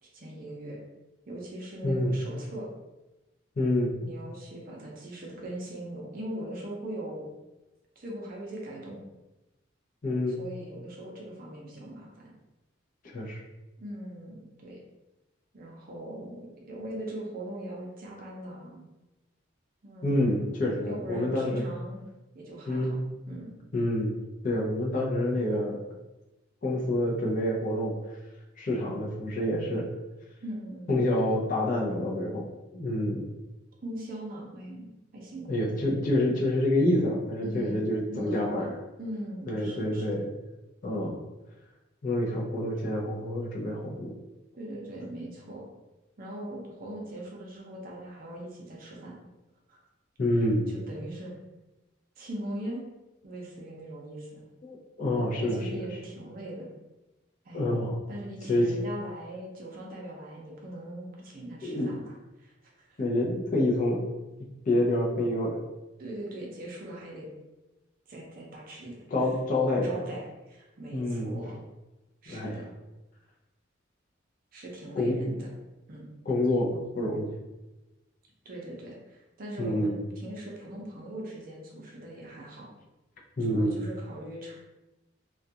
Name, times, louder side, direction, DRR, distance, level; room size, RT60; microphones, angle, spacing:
voice 1, 0.0-0.8 1.3-2.7 4.0-7.3 8.0-9.0 10.3-12.3 13.8-14.8 15.5-18.8 19.8-20.5 20.8-22.0 22.3-23.5 30.4-30.9 33.8-35.7 37.4-38.7 39.0-40.1 44.5-45.7 46.2-49.2 49.7-49.8 50.7-51.3 52.2-52.8 53.2-54.4 55.1-56.7 57.4-57.8 58.1-63.0 66.0-67.3 68.1-69.3 69.8-71.6 72.2-72.7 74.5-75.5 75.9-76.1 78.4-82.7 83.5-84.5, right 1 dB, 45° right, -2 dB, 0.6 m, -40 dB
voice 2, 3.6-3.9 10.0-10.4 13.0-13.4 20.0-21.6 22.7-23.0 23.7-24.2 24.4-25.8 26.6-27.9 28.6-29.9 30.9-32.4 32.7-33.2 35.5-38.7 39.5-40.2 40.8-41.2 42.0-44.1 50.2-50.6 54.6-55.8 57.5-58.0 58.5-58.7 61.6-61.9 63.0-64.0 64.7-65.6 69.1-69.9 70.9-71.3 72.3-72.6 75.0-75.2 76.3-77.3 79.6-80.0 83.4-83.7, left 1 dB, 40° left, -3 dB, 0.5 m, -27 dB
2.3 x 2.2 x 2.7 m, 1.0 s
head